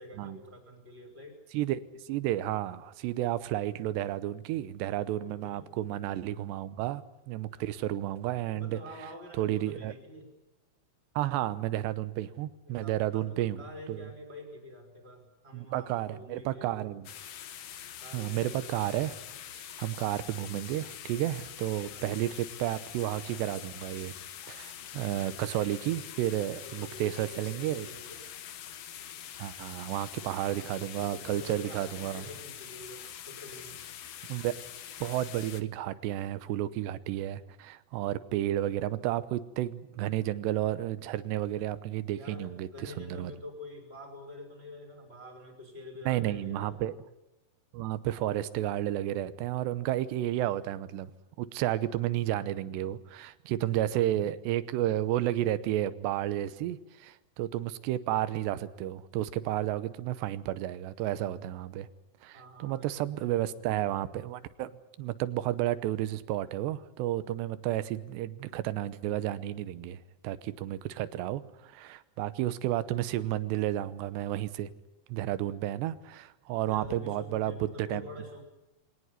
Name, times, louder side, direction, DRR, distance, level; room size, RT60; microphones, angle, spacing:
voice 1, 0.0-1.4 5.2-5.7 8.5-10.3 12.6-16.9 18.0-18.4 21.9-22.4 26.6-28.3 30.9-33.8 42.1-46.8 62.3-63.8 76.7-78.4, left 1 dB, 15° right, 5 dB, 5.5 m, -47 dB
voice 2, 2.1-8.8 9.4-9.9 11.2-13.6 13.9-14.1 15.5-17.1 18.1-19.1 19.8-24.1 24.5-27.9 29.4-32.2 34.3-34.6 35.0-43.3 46.1-47.0 47.7-51.1 51.4-61.9 62.2-64.7 65.0-74.7 75.1-78.0, right 13 dB, 90° right, 14 dB, 3.2 m, -32 dB
sound 1, 17.0-35.6, left 10 dB, 85° left, 1.4 m, -45 dB
22.5 x 18.5 x 9.6 m, 0.98 s
omnidirectional pair, 4.8 m